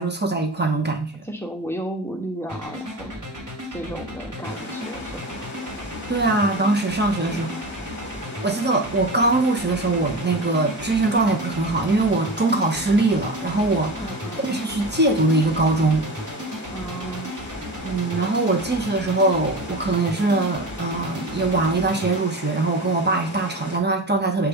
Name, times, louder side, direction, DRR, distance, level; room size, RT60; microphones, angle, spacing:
voice 1, 0.0-1.3 6.1-7.5 8.4-14.1 14.5-16.1 17.8-24.5, right 3 dB, 25° right, 3 dB, 0.7 m, -22 dB
voice 2, 1.2-3.2 3.7-5.4 7.3-7.5 14.0-14.4 16.7-17.3, right 1 dB, 5° left, 2 dB, 0.8 m, -33 dB
sound 1, 2.5-22.2, left 1 dB, 45° right, 1.1 m, -35 dB
sound 2, 4.4-23.8, left 2 dB, 25° left, 1.2 m, -38 dB
6.6 x 2.3 x 3.4 m, 0.42 s
wide cardioid pair, 50°, 45 cm